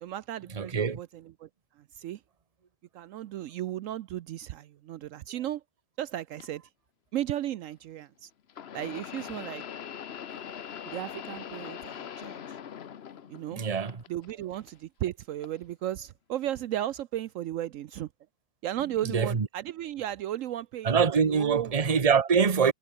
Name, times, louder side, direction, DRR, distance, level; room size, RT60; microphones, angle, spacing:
voice 1, 0.0-1.5 1.8-2.2 2.9-5.6 6.0-6.6 7.1-8.3 8.7-9.6 10.9-12.6 13.3-13.6 14.1-18.1 18.6-21.8, right 12 dB, 75° right, 1.0 m, -35 dB
voice 2, 0.5-1.0 13.5-14.0 19.1-19.5 20.8-22.7, right 6 dB, 30° right, 1.1 m, -24 dB
sound 1, 6.4-6.5 8.5-13.6 13.9-14.7 15.4-15.6 16.5-16.6, left 8 dB, 55° left, 1.0 m, -41 dB
omnidirectional pair, 1.4 m